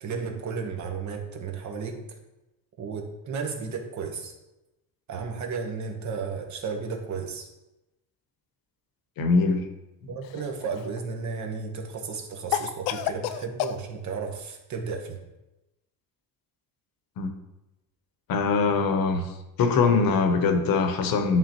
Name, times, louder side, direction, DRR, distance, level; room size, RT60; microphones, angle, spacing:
voice 1, 0.0-2.1 2.8-4.3 5.1-7.5 10.1-15.2, right 5 dB, 40° right, 3 dB, 1.1 m, -33 dB
voice 2, 9.2-9.7 17.2-17.3 18.3-19.3 19.6-21.4, left 4 dB, 55° left, 7 dB, 0.9 m, -22 dB
Cough, 10.2-11.0 12.5-13.8, left 11 dB, 85° left, 0.5 m, -30 dB
10.5 x 3.7 x 3.0 m, 0.97 s
cardioid pair, 130°, 42 cm